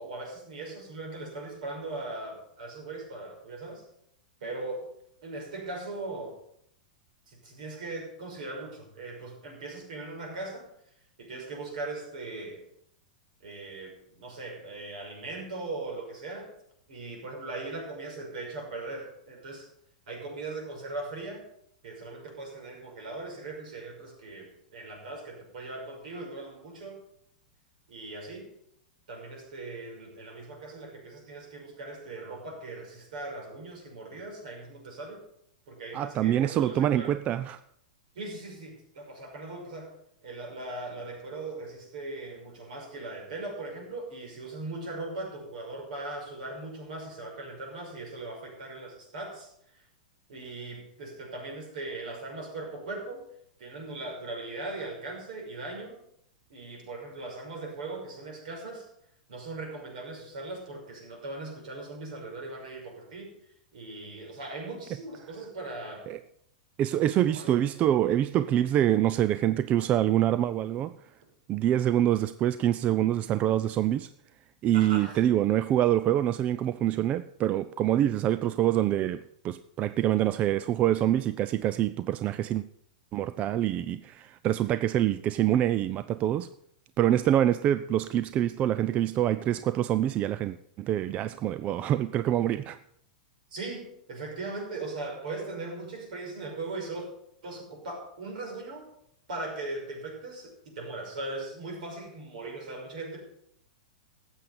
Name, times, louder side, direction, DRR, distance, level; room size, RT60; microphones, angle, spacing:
voice 1, 0.0-3.8 4.4-4.9 5.2-6.4 7.3-10.7 11.2-12.6 13.4-16.5 16.9-19.7 20.1-21.4 21.8-27.0 27.9-28.5 29.1-35.2 35.7-37.1 38.1-39.9 40.2-49.5 49.7-49.8 50.3-53.3 53.6-56.0 56.5-58.9 59.3-63.3 63.7-66.1 67.3-67.6 74.7-75.2 93.5-97.1 97.4-98.9 99.3-103.2, right 2 dB, 70° right, 5.7 m, -39 dB
voice 2, 35.9-37.6 66.1-66.2 66.8-70.9 71.5-74.1 74.6-82.6 83.1-86.5 87.0-92.8, right 12 dB, 35° right, 0.4 m, -25 dB
13.0 x 8.0 x 6.9 m
hypercardioid pair, 120°, 4 cm